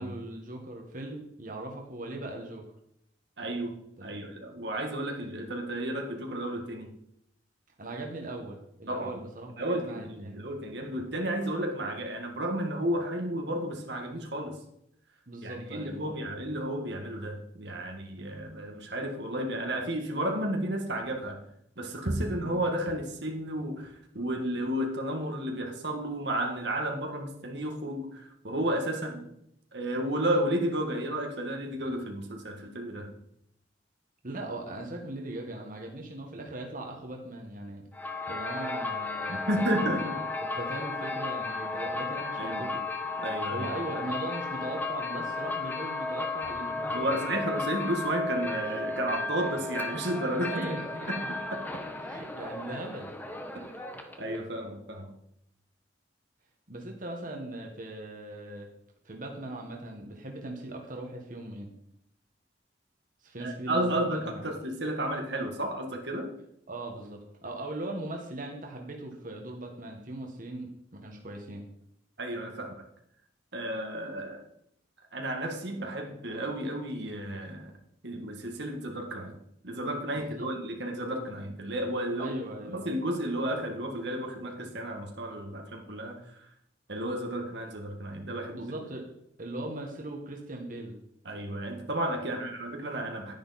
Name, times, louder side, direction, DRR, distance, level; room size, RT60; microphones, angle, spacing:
voice 1, 0.0-2.6 4.1-4.2 7.8-10.5 15.3-16.1 22.2-22.6 34.2-37.8 38.3-42.8 43.5-47.4 50.5-51.3 52.0-53.1 53.9-54.0 56.7-58.7 59.0-61.7 63.2-64.4 66.7-71.6 80.1-80.5 82.2-82.8 88.5-89.1 89.4-90.9 92.3-92.4, right 1 dB, 50° right, 1 dB, 1.7 m, -39 dB
voice 2, 3.4-7.0 8.9-9.1 9.6-14.6 15.4-21.4 21.8-29.3 29.7-33.1 39.3-40.2 42.4-42.7 43.2-43.7 46.9-50.7 51.1-51.8 53.5-53.8 54.2-55.1 63.4-66.3 72.2-72.7 73.5-74.4 75.1-77.7 78.0-79.4 79.6-82.4 82.6-86.5 86.9-88.7 91.3-93.3, right 1 dB, 65° right, 2 dB, 1.8 m, -32 dB
sound 1, 37.9-54.4, left 3 dB, 10° left, 1.1 m, -34 dB
11.0 x 10.5 x 4.3 m, 0.74 s
head